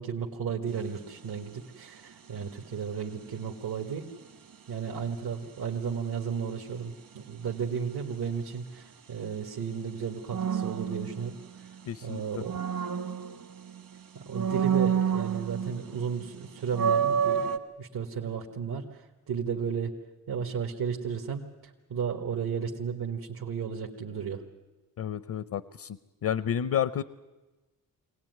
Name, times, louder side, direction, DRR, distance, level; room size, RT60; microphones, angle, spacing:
voice 1, 0.0-4.1 4.7-11.7 12.0-12.5 14.1-19.9 20.3-24.4, right 6 dB, 85° right, 1 dB, 1.8 m, -34 dB
sound 1, 0.7-1.0 10.3-11.7 12.2-13.8 14.3-15.9 16.2-16.3 16.7-17.6, right 7 dB, 65° right, 1.6 m, -28 dB
voice 2, 11.9-12.2 25.0-26.0 26.2-27.0, left 9 dB, 65° left, 16 dB, 0.7 m, -30 dB
24.0 x 17.5 x 9.4 m, 1.2 s
wide cardioid pair, 100°, 37 cm